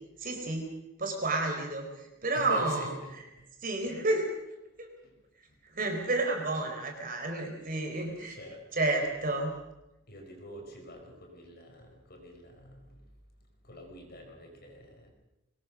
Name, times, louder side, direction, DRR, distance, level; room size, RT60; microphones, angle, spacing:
voice 1, 0.2-0.7 1.0-2.9 3.6-4.3 4.8-4.9 5.6-8.4 8.7-9.5, right 2 dB, 40° right, 3 dB, 4.2 m, -30 dB
voice 2, 2.3-3.2 5.0-5.1 6.0-6.1 8.0-8.6 10.1-13.0 13.6-15.1, left 1 dB, 45° left, 2 dB, 5.2 m, -45 dB
23.5 x 19.5 x 6.4 m, 0.93 s
head